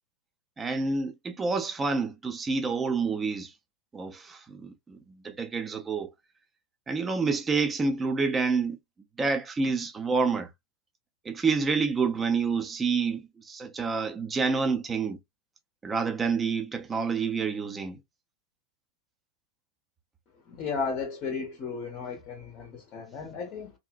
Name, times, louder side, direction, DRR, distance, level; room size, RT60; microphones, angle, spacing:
voice 1, 0.6-3.5 3.9-6.1 6.9-8.8 9.2-10.5 11.2-15.2 15.8-18.0, right 4 dB, 15° right, 0.5 m, -28 dB
voice 2, 20.5-23.7, left 5 dB, 35° left, 0.6 m, -34 dB
2.6 x 2.1 x 2.3 m
figure-of-eight pair, 90°, 0 cm